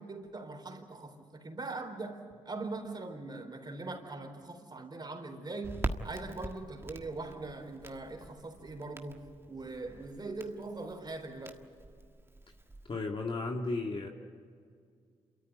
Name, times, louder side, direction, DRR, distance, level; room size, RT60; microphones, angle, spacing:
voice 1, 0.0-11.6, right 3 dB, 35° right, 4.1 m, -41 dB
Crackle, 5.6-12.9, right 2 dB, 20° right, 1.6 m, -43 dB
voice 2, 12.9-14.1, left 3 dB, 45° left, 2.0 m, -34 dB
28.5 x 13.5 x 9.5 m
cardioid pair, 60°, 12 cm